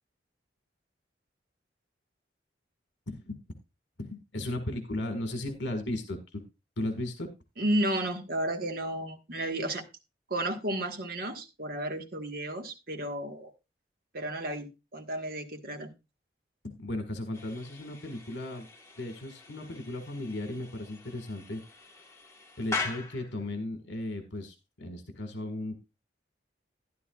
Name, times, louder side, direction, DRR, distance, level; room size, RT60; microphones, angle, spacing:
voice 1, 3.1-3.4 4.0-6.4 6.8-7.3 16.6-18.7 19.0-21.9 22.6-25.7, left 1 dB, 75° left, 1.7 m, -36 dB
voice 2, 7.6-9.8 10.3-13.5 14.1-15.9, right 1 dB, 55° right, 1.5 m, -32 dB
sound 1, 17.3-23.5, left 4 dB, 15° left, 1.3 m, -41 dB
12.5 x 11.0 x 2.4 m
head